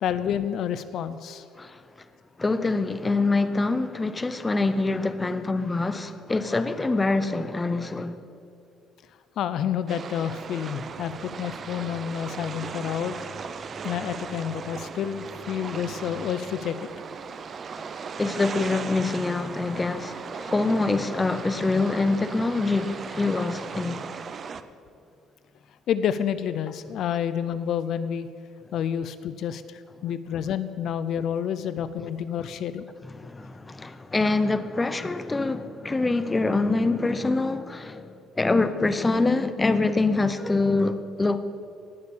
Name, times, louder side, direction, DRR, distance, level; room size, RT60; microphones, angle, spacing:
voice 1, 0.0-1.4 9.4-13.2 13.8-16.9 25.9-28.3 28.7-32.8, left 9 dB, 55° left, 0.5 m, -29 dB
voice 2, 2.4-8.2 17.7-17.8 18.2-24.1 33.0-41.4, left 3 dB, 15° left, 0.6 m, -25 dB
sound 1, 9.9-24.6, right 6 dB, 35° right, 0.5 m, -37 dB
sound 2, 10.9-16.5, left 1 dB, 10° right, 3.1 m, -49 dB
18.0 x 6.5 x 7.1 m
cardioid pair, 140°, 0 cm